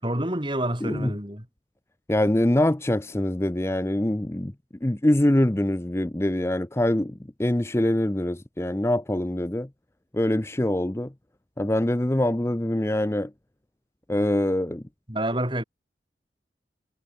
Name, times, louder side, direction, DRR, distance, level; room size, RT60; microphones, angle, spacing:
voice 1, 0.0-1.5 15.1-15.6, right 1 dB, 25° right, 6.6 m, -28 dB
voice 2, 0.8-1.1 2.1-4.5 4.8-9.7 10.1-11.1 11.6-13.3 14.1-14.8, left 1 dB, 15° left, 0.6 m, -24 dB
head